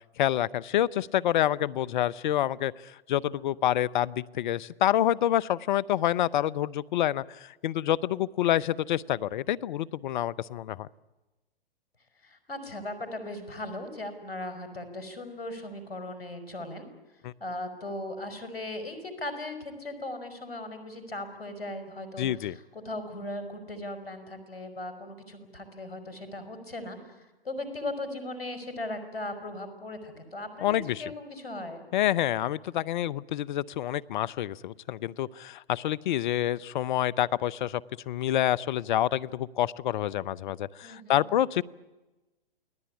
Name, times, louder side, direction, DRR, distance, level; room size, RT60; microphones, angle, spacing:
voice 1, 0.2-2.7 3.1-10.9 17.2-17.3 22.2-22.6 30.6-31.0 31.9-41.6, left 12 dB, 55° left, 21 dB, 0.9 m, -27 dB
voice 2, 12.2-16.9 17.4-30.7 31.0-31.9 40.8-41.4, left 1 dB, 90° left, 9 dB, 5.5 m, -38 dB
29.0 x 19.5 x 10.0 m, 1.1 s
hypercardioid pair, 120°, 29 cm